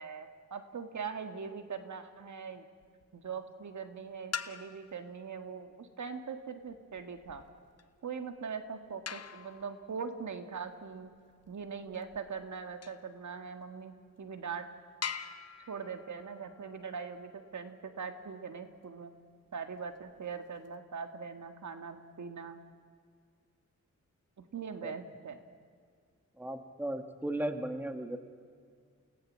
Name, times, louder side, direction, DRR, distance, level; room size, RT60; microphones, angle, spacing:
voice 1, 0.0-2.6 3.1-7.4 8.0-11.1 11.5-14.7 15.7-19.1 19.5-22.6 24.4-25.4, right 6 dB, 75° right, 7 dB, 1.8 m, -41 dB
sound 1, 2.8-3.3 4.1-5.0 6.7-13.1 13.8-13.9 14.4-14.5 15.0-17.7 19.8-20.7, left 7 dB, 55° left, 1.1 m, -45 dB
voice 2, 26.4-28.2, right 1 dB, 5° right, 7 dB, 1.8 m, -36 dB
29.5 x 18.5 x 7.5 m, 2.1 s
wide cardioid pair, 90°, 30 cm